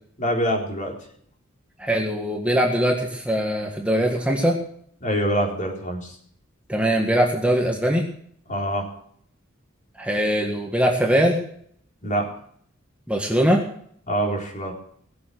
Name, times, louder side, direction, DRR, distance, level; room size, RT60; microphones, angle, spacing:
voice 1, 0.2-0.9 5.0-6.2 8.5-8.9 12.0-12.3 14.1-14.7, equal, 40° left, 0 dB, 4.2 m, -25 dB
voice 2, 1.8-4.6 6.7-8.1 10.0-11.4 13.1-13.6, equal, 5° right, 1 dB, 1.7 m, -21 dB
20.0 x 7.7 x 8.0 m, 0.63 s
head